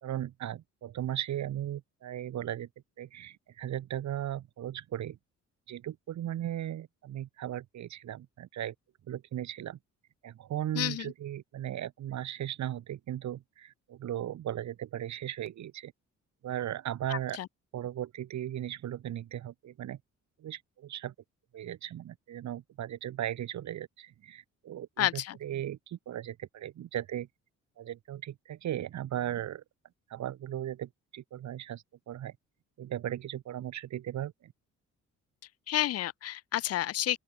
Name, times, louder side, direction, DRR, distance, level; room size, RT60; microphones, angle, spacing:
voice 1, 0.0-2.7 3.0-5.2 5.7-8.7 9.1-9.8 10.2-15.9 16.4-17.4 17.7-20.0 20.4-21.1 21.5-27.3 27.8-29.6 30.1-32.3 32.8-34.5, right 11 dB, 65° right, 1.9 m, -37 dB
voice 2, 10.7-11.1 17.1-17.5 25.0-25.4 35.7-37.2, left 13 dB, 55° left, 0.7 m, -30 dB
open air
cardioid pair, 90°, 30 cm